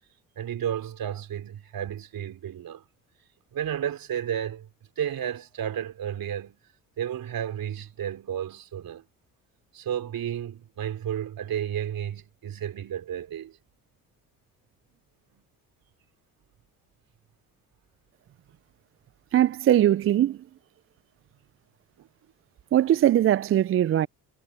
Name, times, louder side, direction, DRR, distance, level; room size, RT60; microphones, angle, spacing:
voice 1, 0.4-2.8 3.5-4.7 5.0-6.6 7.0-9.0 9.7-13.6 15.3-15.4 22.0-22.1, right 9 dB, 60° right, 3.8 m, -32 dB
voice 2, 19.3-20.4 22.7-24.1, right 12 dB, 35° right, 0.4 m, -20 dB
hypercardioid pair, 60°, 40 cm